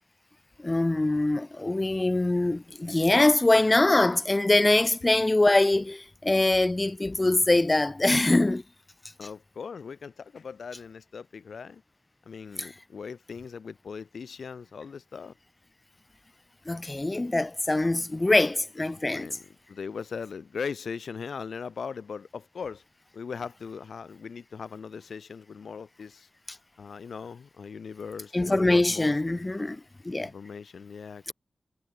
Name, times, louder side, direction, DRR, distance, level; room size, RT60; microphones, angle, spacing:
voice 1, 0.6-8.6 12.6-12.7 16.7-19.3 28.3-30.3, left 2 dB, 20° left, 3.9 m, -23 dB
voice 2, 9.2-11.8 12.2-15.3 19.1-19.4 19.7-22.8 23.1-26.3 26.8-29.1 30.2-31.3, left 6 dB, 70° left, 6.2 m, -39 dB
wide cardioid pair, 170°, 0 cm